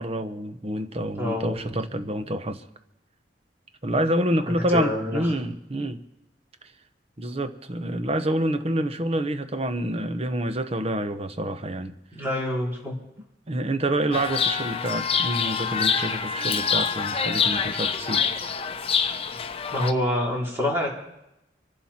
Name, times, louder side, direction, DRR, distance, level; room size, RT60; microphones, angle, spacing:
voice 1, 0.0-2.6 3.8-6.0 7.2-11.9 13.5-18.3, right 1 dB, 35° right, 1.0 m, -27 dB
voice 2, 1.2-1.6 4.5-5.3 12.1-12.9 19.7-20.9, left 1 dB, 15° right, 3.9 m, -26 dB
Chirp tweet, 14.1-19.9, left 6 dB, 35° left, 0.8 m, -26 dB
25.0 x 11.5 x 4.4 m
head